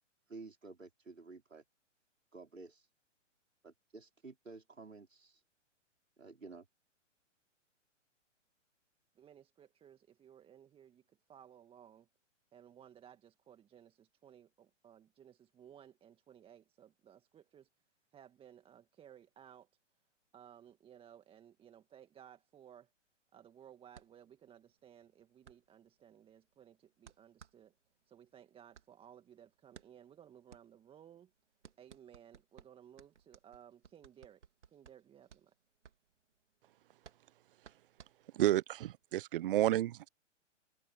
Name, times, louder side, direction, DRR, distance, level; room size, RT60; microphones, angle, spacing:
voice 1, 0.3-1.6 2.3-2.9 3.6-5.4 6.2-6.7, right 3 dB, 85° right, 5.3 m, -52 dB
voice 2, 9.2-12.1 12.5-17.7 18.1-19.7 20.3-22.9 23.3-27.7 28.1-31.3 31.8-35.5, right 9 dB, 15° right, 1.8 m, -59 dB
sound 1, 23.9-39.0, right 7 dB, 65° right, 3.1 m, -61 dB
voice 3, 38.3-40.1, right 14 dB, 45° right, 1.0 m, -31 dB
figure-of-eight pair, 120°, 38 cm